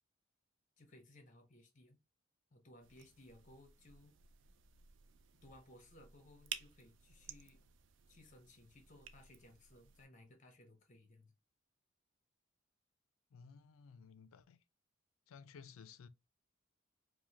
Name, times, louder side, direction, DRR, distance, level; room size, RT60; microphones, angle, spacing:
voice 1, 0.8-2.0 2.5-4.1 5.4-7.6 8.1-11.3, left 1 dB, 35° left, 0.9 m, -61 dB
sound 1, 2.8-10.1, right 9 dB, 60° right, 0.4 m, -54 dB
voice 2, 13.3-14.6 15.3-16.1, left 6 dB, 85° left, 0.4 m, -56 dB
4.7 x 2.1 x 2.8 m
head